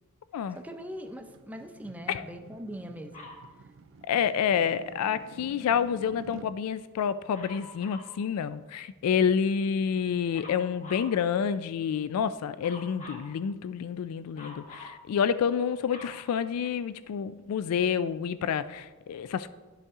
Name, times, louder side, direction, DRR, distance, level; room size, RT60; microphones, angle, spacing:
voice 1, 0.5-3.3, equal, 5° right, 6 dB, 0.5 m, -41 dB
sound 1, 0.5-6.5, right 4 dB, 60° right, 0.4 m, -50 dB
Dog, 3.1-3.5 7.3-8.2 10.3-11.2 12.6-13.3 14.3-15.0 15.5-17.0 17.8-17.9, left 2 dB, 30° left, 1.4 m, -46 dB
voice 2, 4.1-19.5, left 7 dB, 80° left, 15 dB, 0.3 m, -28 dB
11.5 x 5.4 x 3.6 m, 1.3 s
head